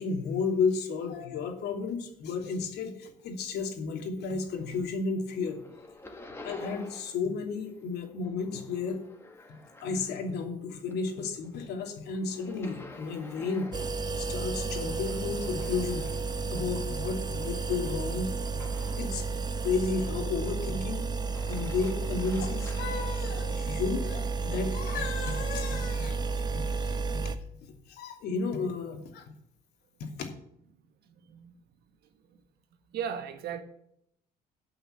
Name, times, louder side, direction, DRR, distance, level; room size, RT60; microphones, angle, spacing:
voice 1, 0.0-5.6 6.4-9.0 9.8-13.7 14.2-16.1 16.5-18.3 19.0-19.3 19.6-21.1 21.4-26.2 26.5-27.2 27.9-29.2 30.0-30.3, left 4 dB, 75° left, 3 dB, 2.8 m, -33 dB
sound 1, 4.3-5.0 5.3-7.3 7.6-10.4 10.8-19.1 19.6-20.3 21.1-22.9, left 2 dB, 15° left, 2.1 m, -50 dB
sound 2, 13.7-27.4, right 4 dB, 25° right, 1.0 m, -32 dB
voice 2, 31.0-31.5 32.2-32.4 32.9-33.6, right 8 dB, 70° right, 7 dB, 1.7 m, -37 dB
12.5 x 5.8 x 8.9 m, 0.75 s
cardioid pair, 110°, 17 cm